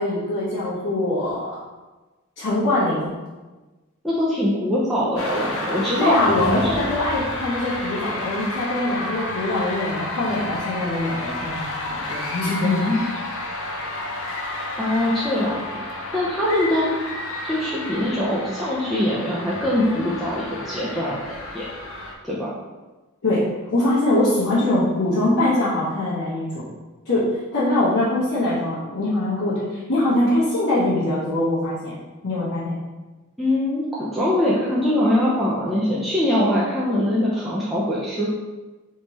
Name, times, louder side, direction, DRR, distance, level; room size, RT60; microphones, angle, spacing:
voice 1, 0.0-1.5 2.4-3.1 6.0-12.9 23.2-26.7 27.0-32.0 32.2-32.8, left 1 dB, 80° left, -13 dB, 1.4 m, -23 dB
voice 2, 4.0-6.8 12.9-13.0 14.8-15.8 16.1-16.9 17.4-21.7 22.2-22.5 33.4-38.3, left 1 dB, ahead, -9 dB, 0.5 m, -23 dB
sound 1, 5.2-22.1, left 2 dB, 65° left, 0.7 m, -31 dB
3.5 x 3.1 x 4.1 m, 1.2 s
head